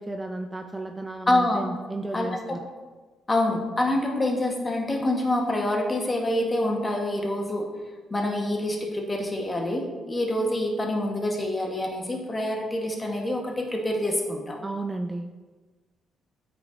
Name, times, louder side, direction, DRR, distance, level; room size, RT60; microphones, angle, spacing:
voice 1, 0.0-2.6 14.6-15.3, right 2 dB, 20° right, 5 dB, 0.4 m, -33 dB
voice 2, 1.3-1.7 2.1-2.3 3.3-7.7 8.1-14.6, left 1 dB, 25° left, 1 dB, 1.1 m, -26 dB
8.7 x 5.1 x 2.5 m, 1.3 s
cardioid pair, 90°, 0 cm